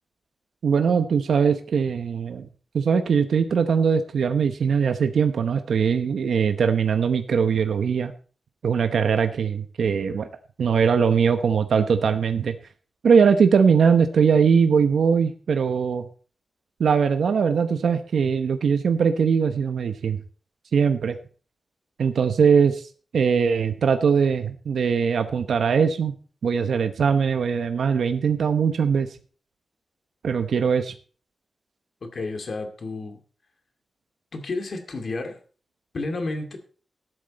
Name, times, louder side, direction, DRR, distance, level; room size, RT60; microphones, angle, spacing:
voice 1, 0.6-2.5 2.7-8.1 8.6-10.3 10.6-12.6 13.0-16.0 16.8-20.2 20.7-21.1 22.0-22.8 23.1-26.1 26.4-29.1 30.2-30.9, right 6 dB, 75° right, 8 dB, 0.9 m, -21 dB
voice 2, 32.0-33.2 34.3-35.4 35.9-36.6, left 3 dB, 45° left, 5 dB, 2.3 m, -31 dB
13.0 x 11.5 x 4.2 m, 0.41 s
wide cardioid pair, 180°, 0 cm